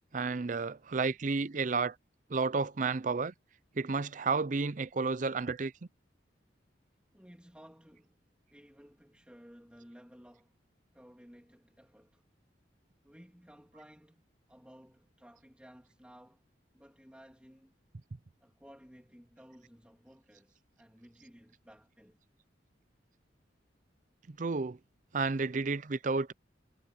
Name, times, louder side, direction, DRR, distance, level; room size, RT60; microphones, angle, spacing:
voice 1, 0.1-2.0 2.3-3.3 3.8-5.7 24.3-24.8 25.1-26.3, right 4 dB, 45° right, 0.5 m, -31 dB
voice 2, 7.1-8.1 8.5-10.5 10.9-12.2 13.0-16.4 16.7-17.8 18.4-22.2, equal, 5° right, 3.1 m, -56 dB
head